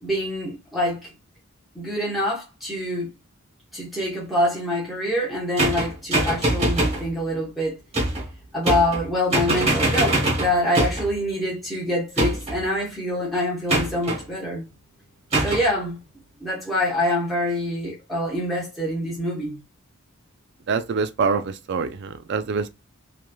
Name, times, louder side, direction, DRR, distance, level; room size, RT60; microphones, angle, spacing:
voice 1, 0.0-1.1 1.7-3.1 3.7-7.8 8.5-14.7 15.4-16.0 16.4-19.6, left 1 dB, ahead, 0.9 m, -25 dB
sound 1, 5.6-7.1 7.9-8.3 8.6-9.1 9.3-11.1 12.2-12.6 13.7-14.2 15.3-15.7, right 1 dB, 25° right, 1.0 m, -23 dB
voice 2, 20.7-22.7, right 5 dB, 50° right, 0.3 m, -25 dB
3.0 x 2.4 x 2.2 m
head